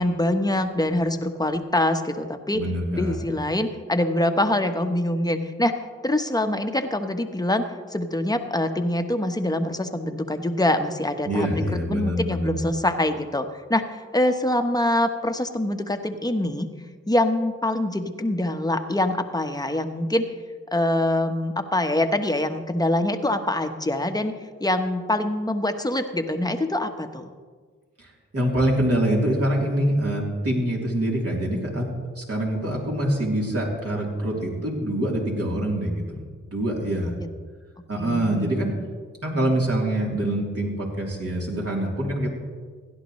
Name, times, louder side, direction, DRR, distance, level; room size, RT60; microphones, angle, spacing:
voice 1, 0.0-2.6 3.0-5.8 6.0-7.6 7.9-16.7 17.1-20.2 20.7-24.3 24.6-27.3 37.2-37.3 38.0-38.5, left 1 dB, 15° left, 6 dB, 1.2 m, -24 dB
voice 2, 2.5-3.2 11.2-12.6 28.0-31.9 32.2-36.2 36.5-37.1 37.9-38.7 39.2-42.3, right 1 dB, 50° right, -3 dB, 3.4 m, -25 dB
16.5 x 10.5 x 3.2 m, 1.5 s
supercardioid pair, 45°, 30 cm